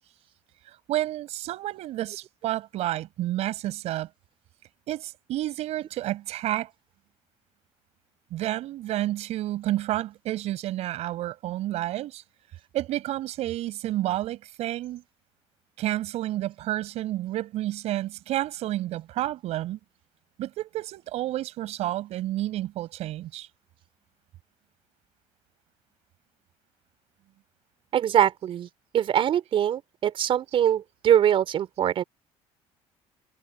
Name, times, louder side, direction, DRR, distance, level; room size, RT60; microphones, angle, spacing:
voice 1, 0.9-4.1 4.9-6.7 8.3-12.2 12.7-15.0 15.8-19.8 20.4-23.5, right 14 dB, 65° right, 5.5 m, -30 dB
voice 2, 27.9-28.7 28.9-32.0, right 10 dB, 50° right, 4.6 m, -23 dB
cardioid pair, 125°, 12 cm